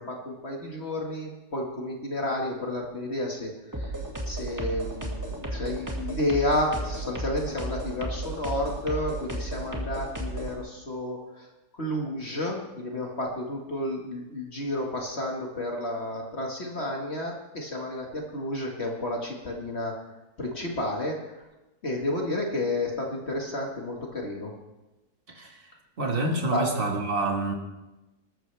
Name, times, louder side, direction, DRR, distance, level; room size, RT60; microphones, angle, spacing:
voice 1, 0.0-3.5 3.8-3.9 4.3-11.5 11.8-19.9 20.4-21.4 21.8-24.5 26.5-26.8, left 1 dB, 40° left, 0 dB, 2.1 m, -31 dB
sound 1, 3.7-10.5, right 1 dB, 10° right, 2.0 m, -33 dB
voice 2, 25.3-25.7 26.0-27.5, right 2 dB, 35° right, 2 dB, 1.9 m, -27 dB
20.0 x 13.5 x 3.4 m, 1.0 s
omnidirectional pair, 1.7 m